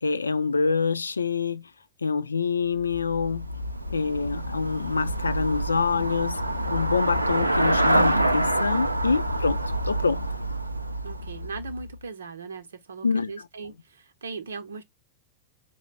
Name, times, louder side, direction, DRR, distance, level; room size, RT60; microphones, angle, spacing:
voice 1, 0.0-1.7 2.0-3.5 3.9-6.4 6.7-9.6 9.9-10.2 13.0-13.3, left 5 dB, 75° left, 0.4 m, -26 dB
Traffic noise roadway noise / Bicycle, 2.8-12.0, right 1 dB, 85° right, 0.5 m, -26 dB
voice 2, 3.9-4.3 11.0-14.8, right 4 dB, 70° right, 0.8 m, -39 dB
5.6 x 2.2 x 3.3 m
figure-of-eight pair, 90°, 0 cm